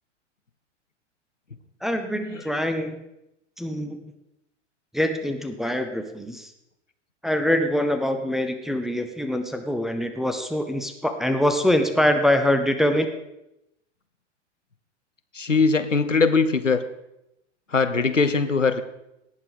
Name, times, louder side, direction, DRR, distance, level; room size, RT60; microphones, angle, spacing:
voice 1, 1.8-3.0 3.6-4.1 4.9-6.5 7.2-13.1, left 1 dB, ahead, 5 dB, 0.9 m, -24 dB
voice 2, 15.3-16.8 17.7-18.8, left 4 dB, 90° left, 10 dB, 1.0 m, -21 dB
18.0 x 7.1 x 5.0 m, 0.86 s
figure-of-eight pair, 95°, 36 cm